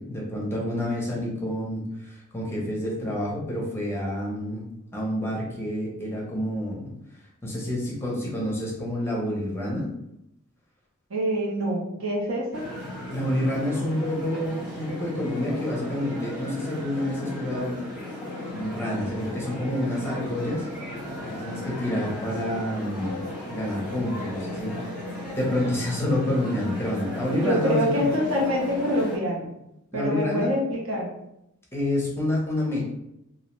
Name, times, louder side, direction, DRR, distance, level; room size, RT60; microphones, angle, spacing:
voice 1, 0.0-4.6 4.9-6.9 7.4-9.9 13.1-17.8 18.5-20.7 21.2-23.2 23.5-25.0 25.4-28.1 29.9-30.6 31.7-32.8, left 1 dB, 10° left, -3 dB, 0.5 m, -28 dB
voice 2, 11.1-12.7 27.4-29.5 29.9-31.1, equal, 65° right, -2 dB, 0.7 m, -25 dB
sound 1, 12.5-29.2, left 1 dB, 5° right, 1.0 m, -35 dB
2.5 x 2.0 x 3.0 m, 0.83 s
head